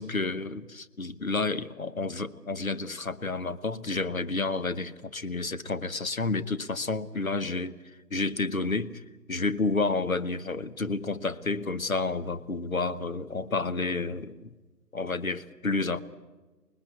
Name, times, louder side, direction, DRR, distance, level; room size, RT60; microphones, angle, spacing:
voice 1, 0.0-9.0 9.3-14.5 14.9-16.0, left 3 dB, 55° left, 12 dB, 1.1 m, -30 dB
25.5 x 20.0 x 8.2 m, 1.3 s
figure-of-eight pair, 180°, 49 cm